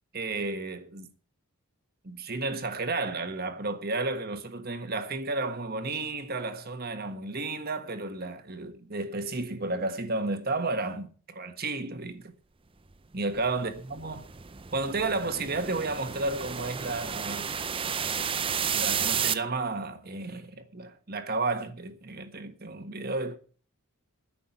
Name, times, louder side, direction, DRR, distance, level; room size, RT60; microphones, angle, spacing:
voice 1, 0.1-1.1 2.0-12.3 13.1-14.3 14.7-17.5 18.7-23.4, right 3 dB, 45° right, 1.5 m, -32 dB
sound 1, 13.3-19.3, right 7 dB, 25° right, 0.6 m, -32 dB
10.0 x 7.6 x 8.9 m
head